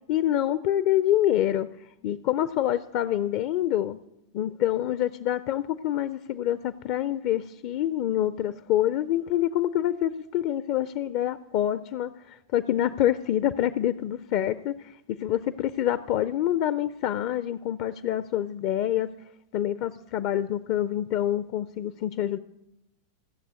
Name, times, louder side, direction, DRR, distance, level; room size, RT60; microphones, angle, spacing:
voice 1, 0.1-1.7 2.0-4.0 4.3-19.1 19.5-22.4, left 12 dB, 45° left, 15 dB, 0.4 m, -26 dB
15.5 x 7.3 x 8.0 m, 0.88 s
figure-of-eight pair, 90°, 0 cm